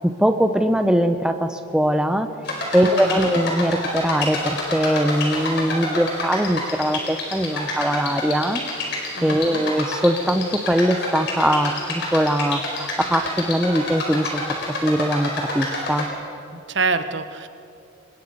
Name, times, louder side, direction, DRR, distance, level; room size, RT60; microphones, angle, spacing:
voice 1, 0.0-2.3 2.7-8.6 9.2-14.4 14.8-16.1, equal, 5° right, 7 dB, 0.7 m, -21 dB
sound 1, 2.5-16.1, left 2 dB, 55° left, 4.8 m, -28 dB
voice 2, 9.2-9.6 16.7-17.5, right 4 dB, 60° right, 9 dB, 1.1 m, -25 dB
25.5 x 21.0 x 5.4 m, 2.6 s
head